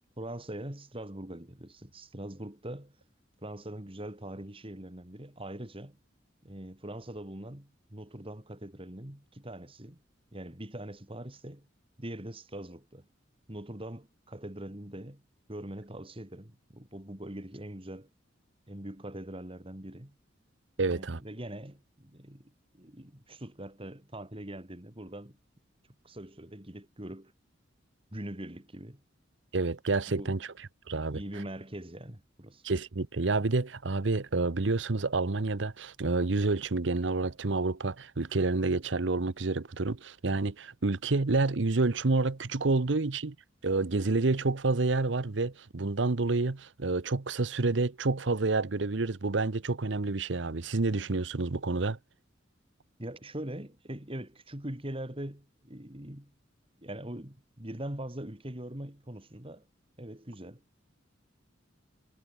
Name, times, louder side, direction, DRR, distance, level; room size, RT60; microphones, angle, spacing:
voice 1, 0.2-3.0 3.4-6.0 6.4-10.0 10.3-11.7 12.0-13.0 13.5-15.2 15.5-18.1 18.7-20.2 20.8-25.4 26.0-27.3 28.1-29.0 30.2-30.4 31.1-32.6 53.0-56.3 56.8-59.7 60.0-60.6, right 1 dB, 30° right, 2.8 m, -42 dB
voice 2, 20.8-21.2 29.5-30.5 30.9-31.2 32.6-43.3 43.6-52.0, right 3 dB, 70° right, 0.9 m, -29 dB
head